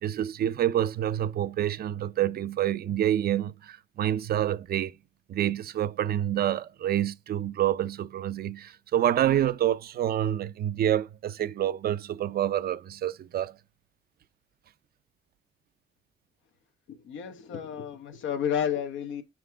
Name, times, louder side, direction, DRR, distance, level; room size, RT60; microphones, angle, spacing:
voice 1, 0.0-4.9 5.3-13.5, right 11 dB, 50° right, 0.4 m, -27 dB
voice 2, 16.9-19.2, left 8 dB, 75° left, 1.0 m, -31 dB
6.1 x 4.7 x 3.6 m
cardioid pair, 90°, 20 cm